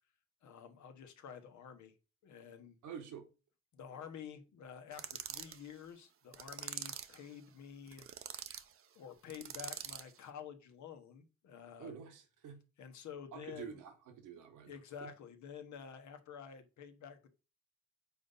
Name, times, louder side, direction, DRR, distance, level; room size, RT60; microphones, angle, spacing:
voice 1, 0.4-1.9 2.2-2.8 3.7-8.1 8.9-11.9 12.8-13.8 14.6-17.3, left 7 dB, 70° left, 1.2 m, -50 dB
voice 2, 2.8-3.3 11.8-12.6 13.3-15.1, right 7 dB, 85° right, 1.4 m, -49 dB
sound 1, 4.9-5.6 6.3-7.2 7.9-8.6 9.3-10.1, right 9 dB, 45° right, 0.6 m, -44 dB
4.9 x 4.0 x 5.4 m
cardioid pair, 90°, 30 cm